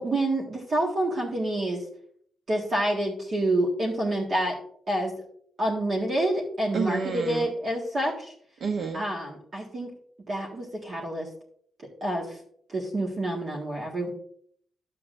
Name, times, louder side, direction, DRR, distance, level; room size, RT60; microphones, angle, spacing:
voice 1, 0.0-1.8 2.5-4.6 4.9-5.1 5.6-8.3 8.9-9.9 10.3-11.3 12.0-12.4 12.7-14.1, right 1 dB, 40° right, -3 dB, 1.8 m, -28 dB
voice 2, 6.7-7.5 8.6-9.0, right 5 dB, 65° right, 5 dB, 0.9 m, -29 dB
12.0 x 8.4 x 2.6 m, 0.62 s
cardioid pair, 130°, 0 cm